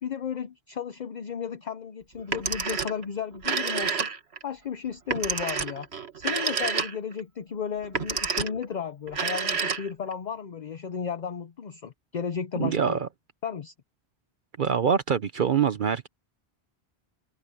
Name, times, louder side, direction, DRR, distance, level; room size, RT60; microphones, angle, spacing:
voice 1, 0.0-4.1 4.4-5.9 6.2-13.0 13.4-13.7, left 7 dB, 50° left, 0.8 m, -34 dB
Telephone, 2.2-3.0 3.3-4.4 5.1-7.2 7.8-8.6 9.1-10.1, right 5 dB, 85° right, 1.8 m, -29 dB
voice 2, 12.6-13.1 14.6-16.1, right 7 dB, 55° right, 0.8 m, -24 dB
omnidirectional pair, 1.1 m